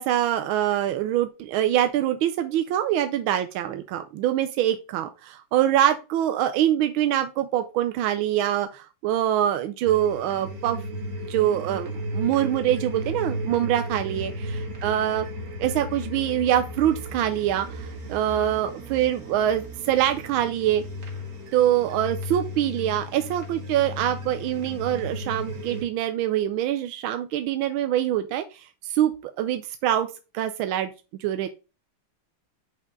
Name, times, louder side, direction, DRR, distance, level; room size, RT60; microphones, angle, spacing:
voice 1, 0.0-10.8 11.2-14.3 14.8-15.3 15.6-20.8 21.5-30.1 30.3-30.9 31.2-31.5, right 11 dB, 85° right, 9 dB, 1.4 m, -24 dB
sound 1, 9.8-25.8, equal, 65° right, 2.4 m, -35 dB
6.0 x 4.5 x 3.7 m, 0.30 s
omnidirectional pair, 2.2 m